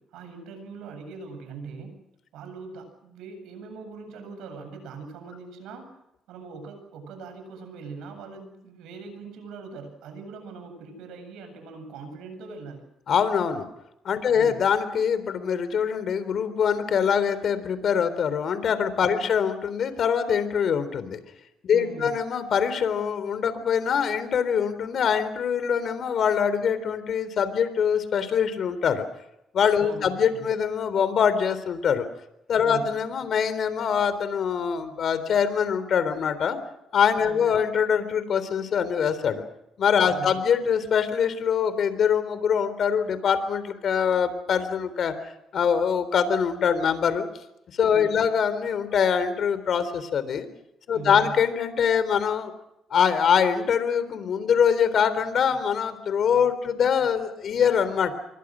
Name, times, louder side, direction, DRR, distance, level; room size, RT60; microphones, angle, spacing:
voice 1, 0.1-2.0 2.3-5.9 6.3-12.9 14.3-14.6 19.1-19.3 21.7-22.1 29.8-30.5 32.6-33.0 37.2-37.4 40.1-40.3 47.9-48.3 50.9-51.3, right 4 dB, 90° right, 7 dB, 7.9 m, -41 dB
voice 2, 13.1-13.7 14.0-21.2 21.6-29.1 29.5-32.0 32.5-36.6 36.9-39.4 39.8-45.1 45.5-47.2 47.8-50.5 50.9-52.5 52.9-58.1, left 7 dB, 60° left, 12 dB, 3.8 m, -23 dB
28.0 x 23.5 x 6.4 m, 0.83 s
cardioid pair, 90°, 0 cm